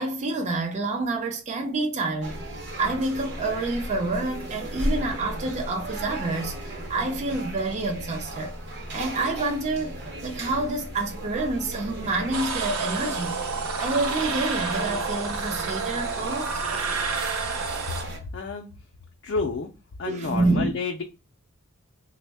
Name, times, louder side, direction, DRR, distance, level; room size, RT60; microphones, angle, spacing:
voice 1, 0.0-8.6 8.9-10.0 10.2-13.4 13.8-16.6 20.0-20.8, right 2 dB, 35° right, 0.5 m, -28 dB
sound 1, 2.2-18.2, right 1 dB, 55° right, 0.9 m, -35 dB
sound 2, 12.3-18.0, right 5 dB, 85° right, 0.6 m, -30 dB
voice 2, 18.0-18.7 19.2-19.7 20.0-21.0, left 4 dB, 55° left, 0.4 m, -30 dB
3.4 x 2.1 x 3.3 m
head